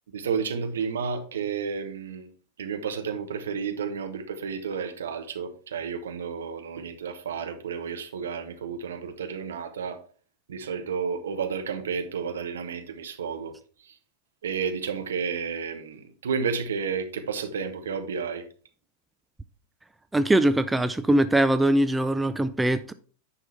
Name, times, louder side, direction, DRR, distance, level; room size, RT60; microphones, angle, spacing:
voice 1, 0.1-2.3 2.6-10.0 10.5-13.5 14.4-18.4, right 6 dB, 65° right, 1.2 m, -31 dB
voice 2, 20.1-22.9, right 1 dB, 10° right, 0.4 m, -22 dB
9.7 x 5.2 x 4.2 m
figure-of-eight pair, 90°, 0 cm